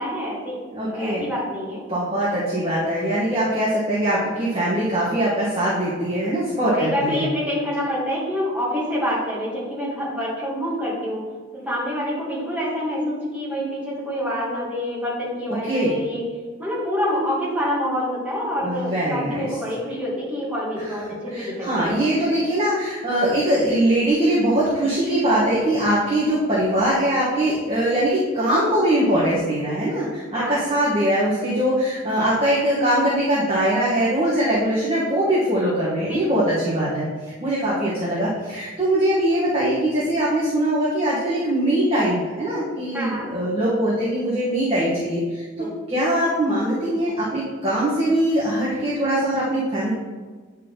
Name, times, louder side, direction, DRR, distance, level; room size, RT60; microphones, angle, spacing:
voice 1, 0.0-0.6 0.9-1.8 6.8-11.2 11.7-16.2 16.6-21.9 30.3-30.8 36.1-36.3 42.9-43.3 45.6-45.7, equal, 5° right, -8 dB, 2.4 m, -27 dB
voice 2, 0.7-1.2 1.9-7.2 15.6-15.9 18.6-19.6 20.8-20.9 21.3-37.1 37.4-49.9, right 1 dB, 30° right, -9 dB, 1.7 m, -22 dB
9.7 x 4.3 x 4.1 m, 1.4 s
head